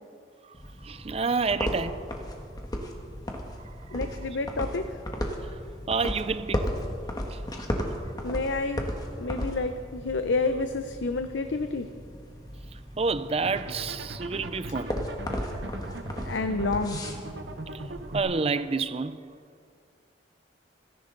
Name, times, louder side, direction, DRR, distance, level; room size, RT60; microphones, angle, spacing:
voice 1, 0.4-2.1 3.6-4.0 5.4-5.6 5.9-6.8 7.3-7.4 8.0-8.1 12.7-15.1 15.9-16.0 17.7-19.3, right 4 dB, 35° right, 0.4 m, -30 dB
sound 1, 0.5-18.2, equal, 20° left, 1.4 m, -35 dB
voice 2, 3.9-5.0 8.2-8.9 9.2-11.9 16.2-17.0, left 3 dB, 85° left, 0.7 m, -29 dB
sound 2, 13.4-18.6, right 2 dB, 70° right, 1.0 m, -39 dB
29.0 x 11.0 x 3.9 m
head